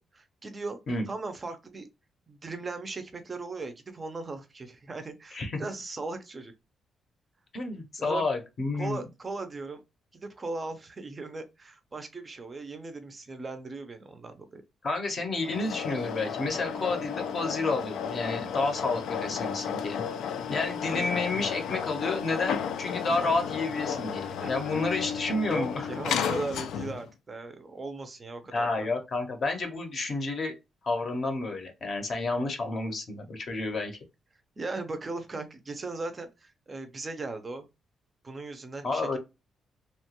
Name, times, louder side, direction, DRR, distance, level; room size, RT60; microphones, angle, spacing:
voice 1, 0.0-0.8 1.1-1.9 2.3-6.5 8.0-8.2 8.8-9.8 10.1-14.6 24.2-25.0 25.4-28.9 34.6-37.7 38.2-39.2, right 3 dB, 20° right, 0.4 m, -38 dB
voice 2, 7.5-9.0 14.8-20.0 20.5-25.9 28.5-30.6 30.8-34.0 38.8-39.2, left 3 dB, 35° left, 0.6 m, -30 dB
sound 1, 15.4-27.1, left 7 dB, 90° left, 0.4 m, -33 dB
2.8 x 2.2 x 2.8 m
wide cardioid pair, 175°, 0 cm